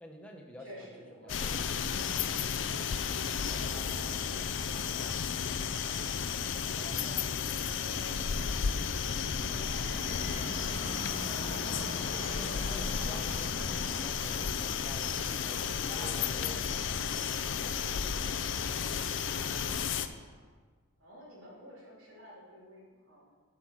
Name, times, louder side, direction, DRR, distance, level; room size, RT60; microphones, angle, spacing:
voice 1, 0.0-0.9 1.2-1.8 6.9-7.4 12.4-17.3, equal, 5° left, 1 dB, 0.9 m, -50 dB
voice 2, 0.6-1.7 3.4-6.2 6.8-8.8 9.3-11.7 15.8-16.9 17.6-20.5 21.0-23.3, equal, 80° right, -6 dB, 3.2 m, -52 dB
sound 1, 1.3-20.1, left 7 dB, 65° left, 0.5 m, -33 dB
Fixed-wing aircraft airplane, 9.8-18.8, left 1 dB, 25° left, 1.9 m, -45 dB
8.1 x 5.7 x 6.4 m, 1.5 s
head